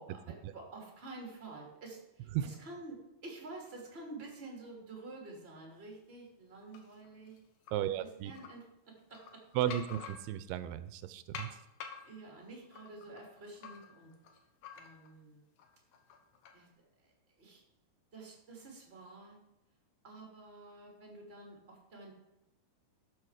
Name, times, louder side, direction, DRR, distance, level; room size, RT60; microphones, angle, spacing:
voice 1, 0.0-7.4 7.8-9.8 12.0-14.1 14.7-15.4 16.5-16.7 17.0-17.1 17.4-17.6 18.1-19.4 20.0-22.1, right 2 dB, 20° right, -1 dB, 2.3 m, -49 dB
sound 1, 6.7-7.7 8.3-8.5 9.0-10.6 11.3-15.2 15.6-16.6, left 6 dB, 65° left, 2.2 m, -49 dB
voice 2, 7.7-8.3 9.6-11.5, right 11 dB, 85° right, 13 dB, 2.5 m, -34 dB
12.5 x 6.9 x 4.8 m, 0.89 s
omnidirectional pair, 4.5 m